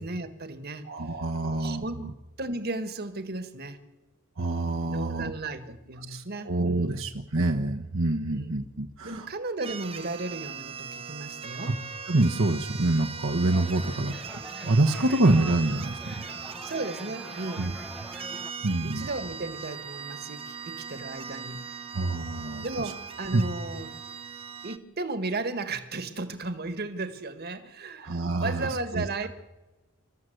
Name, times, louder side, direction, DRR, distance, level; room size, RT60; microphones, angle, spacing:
voice 1, 0.0-0.9 1.5-2.0 2.4-3.8 4.9-7.1 8.3-8.6 9.0-11.8 13.7-14.0 16.6-17.7 18.6-21.6 22.6-23.9 24.6-29.3, right 2 dB, 50° right, 10 dB, 1.7 m, -35 dB
voice 2, 0.8-2.1 4.4-5.3 6.0-9.3 11.7-11.8 12.1-14.1 14.6-16.3 17.6-17.7 18.6-19.1 21.9-22.9 23.3-23.5 28.0-29.1, right 2 dB, 65° right, 2 dB, 1.2 m, -26 dB
sound 1, 9.6-24.8, right 6 dB, 30° right, 0.9 m, -40 dB
sound 2, 13.5-18.5, equal, ahead, 0.8 m, -44 dB
28.0 x 13.5 x 8.0 m, 1.1 s
head